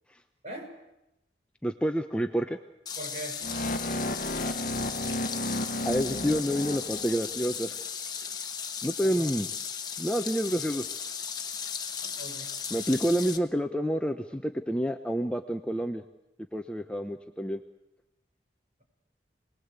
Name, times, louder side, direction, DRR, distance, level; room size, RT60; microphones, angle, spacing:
voice 1, 1.6-2.6 5.8-7.8 8.2-8.3 8.8-9.5 10.0-10.8 12.7-16.0 16.5-17.6, equal, 5° left, 6 dB, 0.8 m, -28 dB
sound 1, 2.9-13.4, left 7 dB, 25° left, 1.5 m, -36 dB
voice 2, 3.0-3.4 9.0-9.3 12.0-12.5, right 1 dB, 40° right, 2 dB, 5.8 m, -41 dB
sound 2, 3.4-7.5, left 1 dB, 45° left, 1.1 m, -33 dB
28.0 x 20.0 x 8.3 m, 0.93 s
head